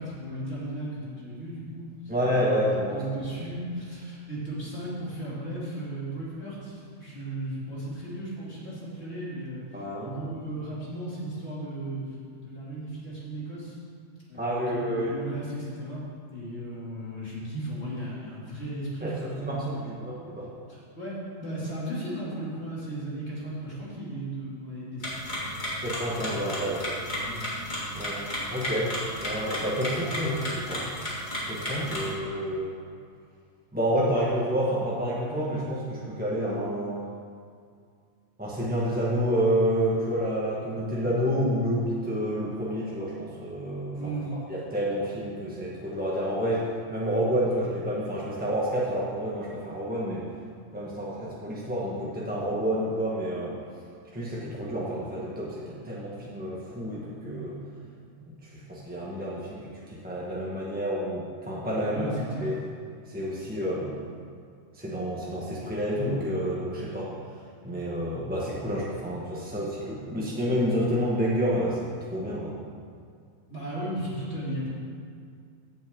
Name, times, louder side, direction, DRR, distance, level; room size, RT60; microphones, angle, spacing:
voice 1, 0.0-1.9 2.1-2.6 2.9-9.6 10.0-12.0 12.4-13.8 14.3-20.1 20.7-25.6 27.2-27.5 43.9-44.4 61.9-62.5 73.5-74.7, right 1 dB, 50° left, -8 dB, 3.1 m, -36 dB
voice 2, 2.1-3.0 9.7-10.1 14.3-15.2 19.0-20.5 25.8-26.8 27.9-28.2 28.5-28.9 29.2-30.8 31.5-32.7 33.7-36.9 38.4-44.1 44.5-50.2 50.7-53.5 54.1-57.6 58.3-62.1 62.4-62.6 63.1-64.0 64.7-67.1 67.6-72.6, equal, 5° right, -6 dB, 1.3 m, -29 dB
sound 1, 25.0-32.1, equal, 35° left, 2.5 m, -33 dB
15.5 x 7.8 x 3.7 m, 2.2 s
omnidirectional pair, 1.4 m